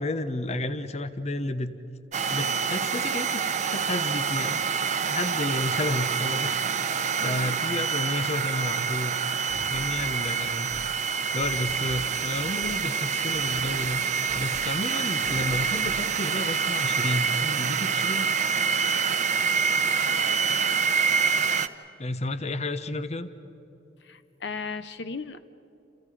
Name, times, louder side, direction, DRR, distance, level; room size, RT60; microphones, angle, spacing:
voice 1, 0.0-1.7 2.3-6.6 7.2-9.2 9.6-10.7 11.3-14.0 14.3-18.3 22.0-23.3, left 2 dB, 35° left, 11 dB, 0.9 m, -31 dB
sound 1, 2.1-21.7, right 6 dB, 40° right, 0.8 m, -26 dB
voice 2, 7.2-7.6 18.9-19.1 24.0-25.4, left 4 dB, 70° left, 12 dB, 0.9 m, -37 dB
sound 2, 9.5-10.2 10.5-10.9 11.4-12.1 12.4-12.8 13.3-14.0 14.3-14.8 15.3-16.1, equal, 15° left, 2.1 m, -45 dB
30.0 x 28.5 x 5.0 m, 2.9 s
head